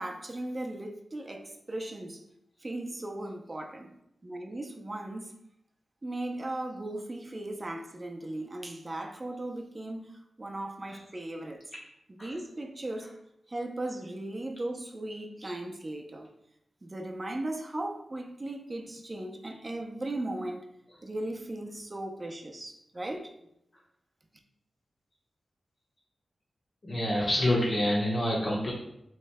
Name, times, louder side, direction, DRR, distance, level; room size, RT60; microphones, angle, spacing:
voice 1, 0.0-2.2 2.6-4.0 4.2-5.3 6.0-10.1 10.4-11.6 12.1-13.1 13.5-16.3 16.8-20.7 21.0-23.3, right 1 dB, 35° right, 0.6 m, -37 dB
voice 2, 26.8-28.7, left 1 dB, 45° left, 1.2 m, -27 dB
6.4 x 3.2 x 2.2 m
cardioid pair, 55°, 0 cm